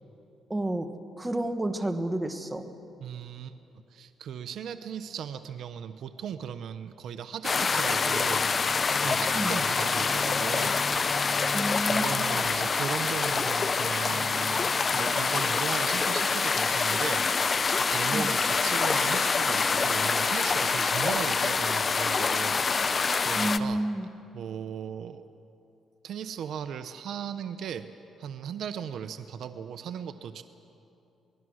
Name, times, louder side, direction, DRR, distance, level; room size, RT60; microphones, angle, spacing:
voice 1, 0.5-0.9 1.2-2.6 9.3-9.6 11.5-12.2 18.1-18.3 23.3-24.1, right 1 dB, 15° right, 7 dB, 1.5 m, -30 dB
voice 2, 3.0-3.6 3.9-11.2 11.7-17.6 17.9-23.9 24.3-25.2 26.0-27.9 28.2-30.4, right 8 dB, 70° right, 10 dB, 0.8 m, -37 dB
sound 1, 7.4-23.6, left 4 dB, 35° left, 0.7 m, -26 dB
25.0 x 20.5 x 6.4 m, 2.8 s
cardioid pair, 90°, 0 cm